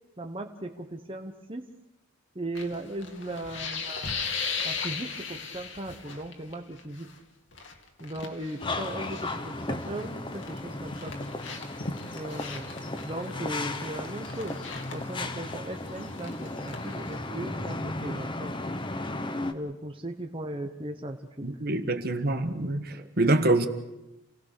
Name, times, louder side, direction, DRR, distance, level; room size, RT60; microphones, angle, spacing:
voice 1, 0.2-1.7 2.3-4.2 4.6-7.1 8.0-11.2 12.1-12.8 13.0-14.6 14.9-18.6 19.5-21.5 22.9-23.1, right 1 dB, 25° right, 1.2 m, -37 dB
sound 1, 2.5-6.5 6.8-7.1 7.5-10.1 10.4-17.1, left 5 dB, 60° left, 2.4 m, -38 dB
sound 2, 8.6-19.5, left 2 dB, 25° left, 1.2 m, -35 dB
voice 2, 21.4-23.7, right 2 dB, 50° right, 1.4 m, -25 dB
28.5 x 18.0 x 6.8 m
head